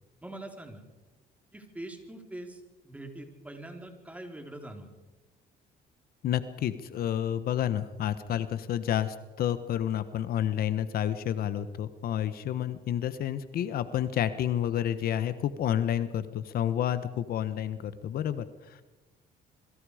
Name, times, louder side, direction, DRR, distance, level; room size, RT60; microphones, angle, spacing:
voice 1, 0.2-0.8 1.5-4.9, right 1 dB, 10° right, 3 dB, 4.4 m, -43 dB
voice 2, 6.2-18.8, left 10 dB, 60° left, 12 dB, 1.2 m, -30 dB
27.0 x 23.0 x 5.1 m, 1.1 s
cardioid pair, 110°, 17 cm